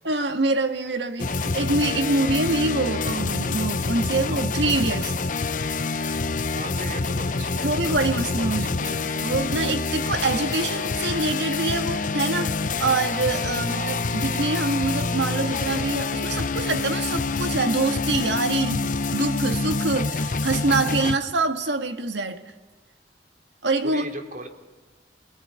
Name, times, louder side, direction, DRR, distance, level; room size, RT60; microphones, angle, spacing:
voice 1, 0.0-5.2 7.6-22.5 23.6-24.1, right 3 dB, 75° right, 1.9 m, -25 dB
sound 1, 1.2-21.2, left 4 dB, 45° left, 0.8 m, -27 dB
voice 2, 6.5-7.7 8.4-9.0 13.4-14.1 20.8-21.1 23.8-24.5, right 2 dB, 45° right, 2.9 m, -38 dB
27.0 x 19.0 x 9.7 m
head